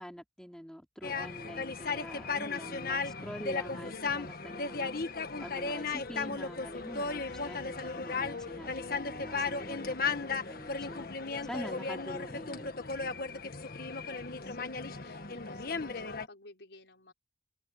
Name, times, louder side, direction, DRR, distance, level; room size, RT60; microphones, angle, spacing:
voice 1, 0.0-4.9 5.4-11.1 11.4-12.8, equal, 5° left, 4.0 m, -45 dB
sound 1, 1.0-16.3, left 4 dB, 55° left, 1.6 m, -35 dB
voice 2, 14.0-17.1, left 2 dB, 90° left, 5.3 m, -54 dB
open air
head